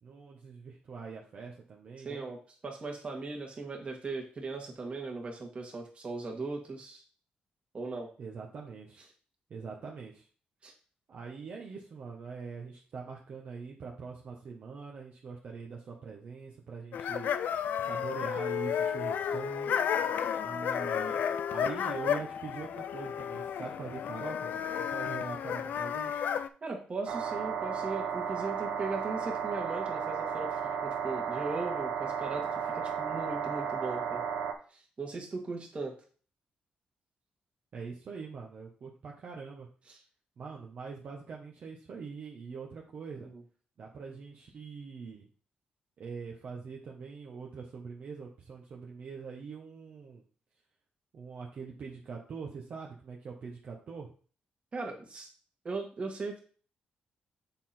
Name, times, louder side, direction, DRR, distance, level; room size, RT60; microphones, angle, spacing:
voice 1, 0.0-2.3 8.2-9.0 9.5-10.3 11.1-17.3 17.8-19.7 20.4-21.2 21.5-26.2 37.7-39.7 40.4-43.3 43.8-45.3 46.0-50.2 51.1-54.1, right 5 dB, 60° right, -1 dB, 1.1 m, -43 dB
voice 2, 2.0-2.4 2.6-7.0 7.7-8.1 10.6-10.7 26.6-34.2 34.7-36.0 39.9-40.0 43.2-43.4 54.7-55.3 55.6-56.4, right 3 dB, 40° right, 1 dB, 1.9 m, -38 dB
sound 1, 16.9-26.5, left 8 dB, 75° left, 0.4 m, -32 dB
sound 2, 27.1-34.5, right 7 dB, 85° right, 0.8 m, -34 dB
7.2 x 3.9 x 4.3 m, 0.41 s
cardioid pair, 90°, 3 cm